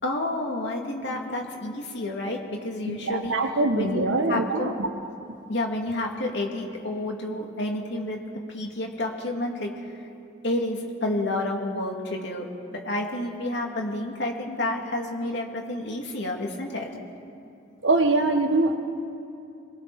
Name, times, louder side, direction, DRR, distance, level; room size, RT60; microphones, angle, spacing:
voice 1, 0.0-3.3 3.7-4.7 5.5-8.2 8.5-9.9 10.4-12.4 12.8-16.9, left 1 dB, 65° left, 0 dB, 2.9 m, -30 dB
voice 2, 2.9-4.9 17.8-18.8, right 2 dB, 80° right, 6 dB, 1.6 m, -23 dB
27.0 x 21.5 x 4.4 m, 2.6 s
head